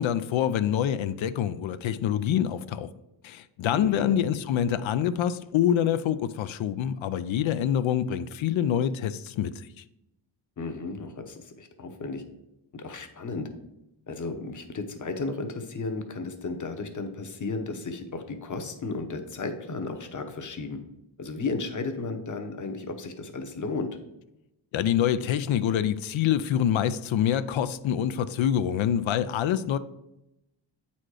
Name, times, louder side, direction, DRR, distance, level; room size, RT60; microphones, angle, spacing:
voice 1, 0.0-2.9 3.2-9.8 24.7-29.8, left 10 dB, 75° left, 0.6 m, -26 dB
voice 2, 3.7-4.2 4.8-4.9 10.6-12.2 12.7-13.5 14.1-20.8 21.2-24.0, left 3 dB, 40° left, 1.0 m, -34 dB
8.7 x 4.3 x 4.8 m
wide cardioid pair, 130°, 47 cm